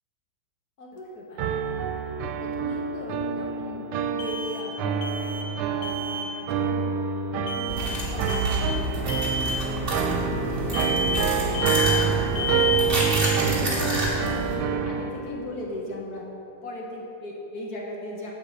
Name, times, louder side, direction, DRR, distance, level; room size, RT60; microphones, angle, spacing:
voice 1, 0.8-1.6 2.4-3.9 4.1-5.3 5.6-6.9 7.6-11.0 11.3-14.0 14.4-16.2 16.6-18.3, left 1 dB, 55° left, -2 dB, 1.3 m, -38 dB
sound 1, 0.9-1.0 4.2-5.6 5.8-6.3 7.5-8.0 8.3-8.8 9.1-9.6 10.7-11.3 11.5-12.1 12.4-12.9, left 3 dB, 85° left, 1.8 m, -30 dB
sound 2, 1.4-15.1, right 6 dB, 90° right, 1.5 m, -27 dB
sound 3, 7.7-14.6, right 1 dB, 25° right, 1.9 m, -29 dB
8.2 x 5.4 x 7.8 m, 3.0 s
omnidirectional pair, 2.3 m